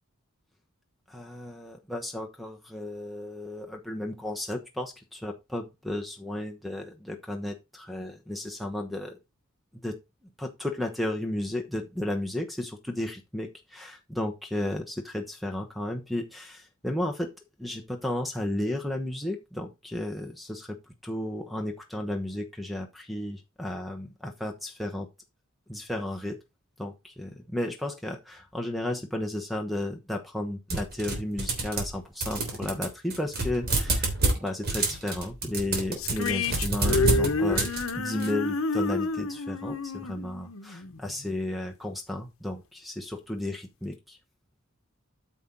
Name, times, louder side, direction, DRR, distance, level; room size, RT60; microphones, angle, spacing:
voice 1, 1.1-9.2 9.8-10.0 10.4-17.3 17.6-20.8 21.0-25.1 25.7-26.4 26.8-44.2, left 1 dB, ahead, 1.0 m, -33 dB
sound 1, 30.7-38.3, right 2 dB, 50° right, 3.2 m, -28 dB
sound 2, 36.0-41.3, left 3 dB, 70° left, 1.0 m, -29 dB
9.2 x 6.1 x 3.9 m
head